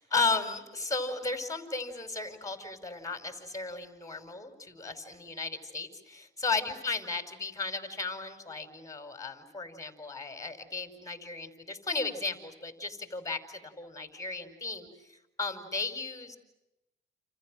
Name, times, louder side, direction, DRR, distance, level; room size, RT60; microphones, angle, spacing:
voice 1, 0.0-16.4, left 3 dB, 15° left, 8 dB, 5.0 m, -35 dB
29.0 x 28.5 x 6.4 m, 0.92 s
cardioid pair, 90°, 20 cm